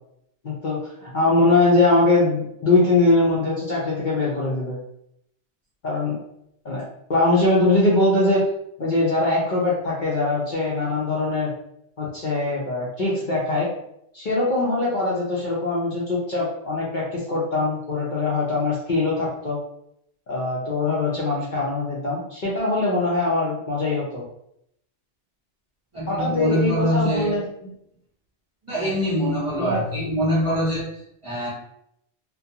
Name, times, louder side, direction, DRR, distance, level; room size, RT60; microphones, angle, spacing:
voice 1, 0.4-4.8 5.8-6.2 6.6-6.8 7.1-8.4 8.8-11.5 12.0-13.7 14.1-19.6 20.3-24.2 26.1-27.4 28.7-28.9 29.6-29.8, left 2 dB, 50° left, -6 dB, 0.6 m, -22 dB
voice 2, 25.9-27.4 28.6-31.5, equal, 30° right, -8 dB, 0.8 m, -24 dB
2.3 x 2.2 x 2.7 m, 0.75 s
omnidirectional pair, 1.2 m